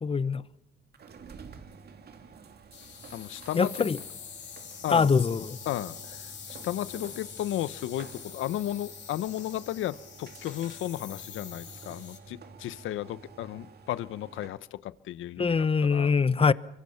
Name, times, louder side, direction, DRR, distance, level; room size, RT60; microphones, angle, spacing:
voice 1, 0.0-0.4 3.5-4.0 4.9-5.6 15.4-16.5, left 5 dB, 30° left, 1.0 m, -23 dB
sound 1, 0.9-14.7, right 5 dB, 55° right, 2.5 m, -50 dB
sound 2, 2.7-12.2, left 8 dB, 65° left, 7.8 m, -45 dB
voice 2, 3.1-3.9 4.8-5.1 5.7-6.2 6.5-16.2, left 13 dB, 80° left, 0.9 m, -34 dB
24.5 x 24.0 x 5.7 m
cardioid pair, 90°, 20 cm